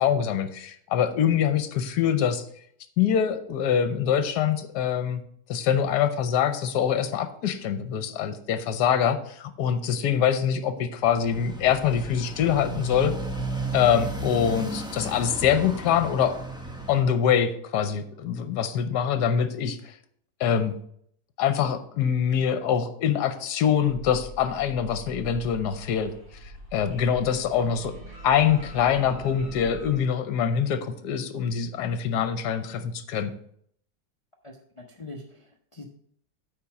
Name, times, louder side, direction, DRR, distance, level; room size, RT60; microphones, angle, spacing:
voice 1, 0.0-2.5 3.0-5.2 5.5-13.1 13.7-16.4 16.9-19.9 20.4-20.7 21.4-26.1 26.4-27.9 28.2-33.3, left 8 dB, 70° left, 10 dB, 1.3 m, -24 dB
Motorcycle, 11.0-17.0, right 2 dB, 5° right, 0.5 m, -34 dB
sound 1, 23.9-30.0, right 1 dB, 45° right, 2.9 m, -42 dB
voice 2, 34.4-35.8, left 2 dB, 55° left, 2 dB, 0.3 m, -43 dB
8.9 x 4.2 x 5.8 m, 0.66 s
omnidirectional pair, 1.9 m